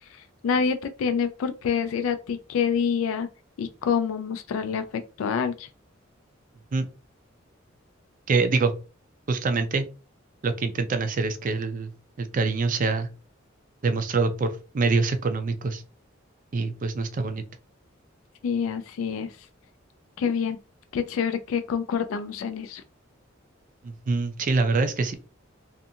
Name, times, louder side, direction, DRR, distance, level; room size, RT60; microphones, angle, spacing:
voice 1, 0.1-3.3 3.6-5.7 18.4-19.3 20.2-20.6 20.9-22.8, left 6 dB, 85° left, 0.3 m, -27 dB
voice 2, 8.3-8.7 9.3-9.9 10.4-11.9 12.2-13.1 13.8-15.8 16.5-17.4 23.8-25.1, right 4 dB, 40° right, 0.4 m, -25 dB
2.6 x 2.4 x 2.7 m
head